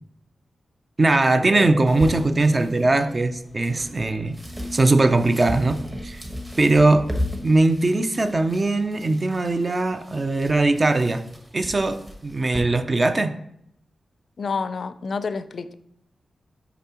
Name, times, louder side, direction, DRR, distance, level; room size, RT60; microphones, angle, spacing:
voice 1, 1.0-4.3 4.7-6.2 6.6-7.1 7.4-11.2 11.5-13.3, right 2 dB, 35° right, 9 dB, 0.4 m, -20 dB
sound 1, 1.4-4.3, left 1 dB, ahead, 0.7 m, -35 dB
sound 2, 1.9-12.6, equal, 20° right, 1.1 m, -36 dB
voice 2, 14.4-15.7, left 4 dB, 60° left, 13 dB, 0.3 m, -28 dB
6.9 x 5.0 x 2.9 m, 0.74 s
cardioid pair, 80°, 0 cm